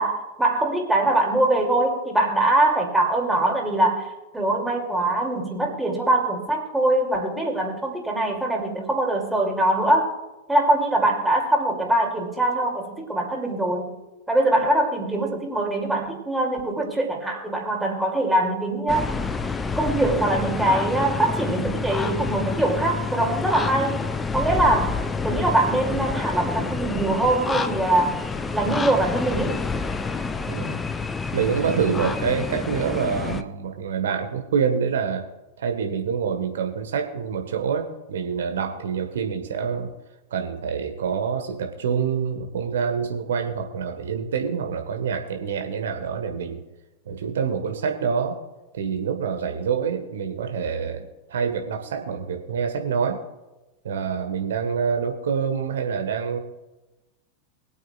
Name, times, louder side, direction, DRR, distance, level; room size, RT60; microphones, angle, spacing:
voice 1, 0.0-10.1 10.5-14.0 14.3-19.1 19.8-24.0 24.3-25.0 25.2-28.2 28.5-29.6, right 1 dB, 5° right, 0 dB, 2.7 m, -23 dB
sound 1, 18.9-33.4, left 4 dB, 15° left, 0.6 m, -28 dB
voice 2, 30.4-30.8 31.3-35.3 35.6-39.9 40.3-46.6 47.0-48.4 48.7-53.2 53.8-56.4, right 6 dB, 60° right, 5 dB, 1.4 m, -26 dB
23.5 x 8.3 x 2.4 m, 1.1 s
figure-of-eight pair, 90°, 0 cm